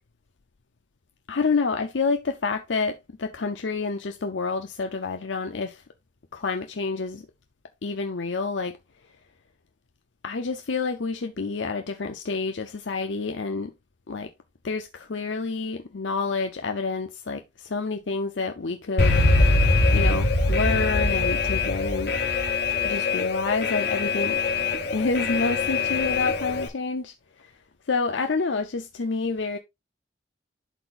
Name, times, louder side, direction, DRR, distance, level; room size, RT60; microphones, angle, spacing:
voice 1, 1.3-5.8 6.3-7.2 7.8-8.8 10.2-13.7 14.1-14.3 14.6-19.2 19.9-22.2 22.8-24.4 24.9-27.1 27.4-27.5 27.9-29.6, left 4 dB, 80° left, 0.7 m, -28 dB
Alarm, 19.0-26.7, left 3 dB, 60° left, 1.5 m, -23 dB
12.0 x 4.1 x 2.5 m
head